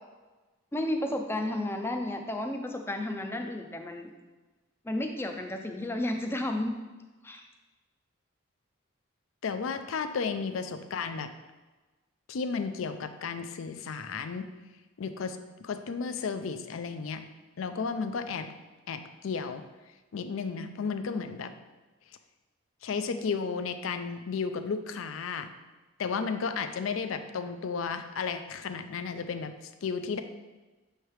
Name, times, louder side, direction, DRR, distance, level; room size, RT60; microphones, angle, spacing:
voice 1, 0.7-4.1 4.8-6.8 7.2-7.5, left 1 dB, 10° left, 4 dB, 0.4 m, -32 dB
voice 2, 9.4-11.3 12.3-14.5 15.0-17.2 17.6-18.5 18.9-19.6 20.1-21.5 22.8-25.5 26.0-29.5 29.8-30.2, left 5 dB, 75° left, 9 dB, 0.4 m, -33 dB
6.4 x 3.3 x 4.6 m, 1.2 s
head